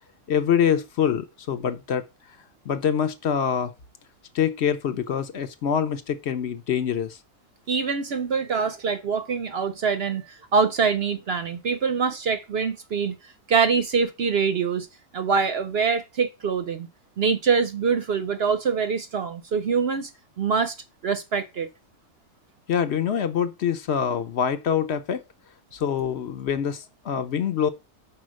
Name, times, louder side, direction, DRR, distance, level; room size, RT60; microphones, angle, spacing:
voice 1, 0.3-2.0 2.7-3.7 4.3-7.2 22.7-25.2 25.7-27.7, left 8 dB, 55° left, 0.9 m, -25 dB
voice 2, 7.7-13.1 13.5-14.9 15.1-16.9 17.2-20.1 20.4-20.7 21.0-21.7, right 5 dB, 55° right, 0.7 m, -24 dB
5.6 x 4.5 x 6.2 m
omnidirectional pair, 1.6 m